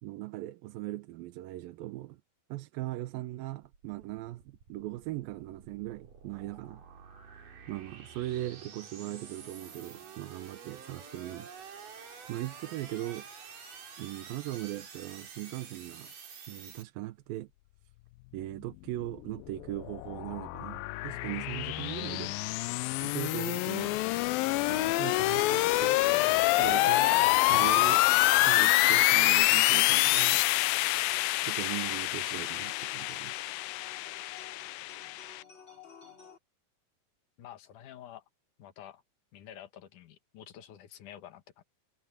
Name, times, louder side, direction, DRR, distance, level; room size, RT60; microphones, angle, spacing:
voice 1, 0.0-2.2 2.5-6.8 7.3-11.5 12.0-13.3 14.0-16.1 16.5-17.5 18.3-22.4 22.7-24.0 24.7-26.0 26.6-27.1 27.5-28.0 28.4-30.4 31.4-33.4, right 16 dB, 90° right, 2.6 m, -39 dB
sound 1, 3.6-16.8, right 6 dB, 65° right, 5.1 m, -49 dB
sound 2, 19.4-35.4, left 19 dB, 90° left, 2.4 m, -26 dB
sound 3, 29.8-36.4, left 6 dB, 30° left, 5.7 m, -52 dB
voice 2, 37.4-38.2 38.6-39.0 39.3-41.6, left 11 dB, 65° left, 2.8 m, -49 dB
omnidirectional pair, 4.0 m